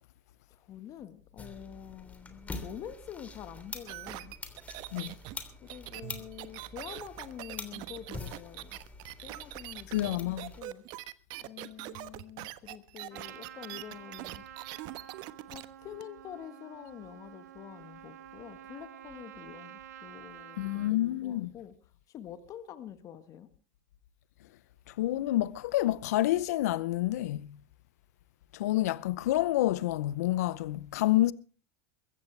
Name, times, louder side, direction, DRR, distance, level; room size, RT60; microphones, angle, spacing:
voice 1, 0.5-4.3 5.6-8.8 9.2-10.8 11.4-14.4 15.5-21.7 22.1-23.5, left 10 dB, 40° left, 1.6 m, -47 dB
sound 1, 1.4-10.6, left 3 dB, 15° left, 3.1 m, -46 dB
sound 2, 3.9-15.7 16.0-16.1, right 18 dB, 55° right, 1.2 m, -43 dB
voice 2, 9.9-10.5 20.6-21.5 24.9-27.5 28.5-31.3, left 15 dB, 75° left, 0.7 m, -28 dB
Trumpet, 13.1-20.9, right 11 dB, 80° right, 1.6 m, -49 dB
22.5 x 15.5 x 3.4 m
hypercardioid pair, 100°, 9 cm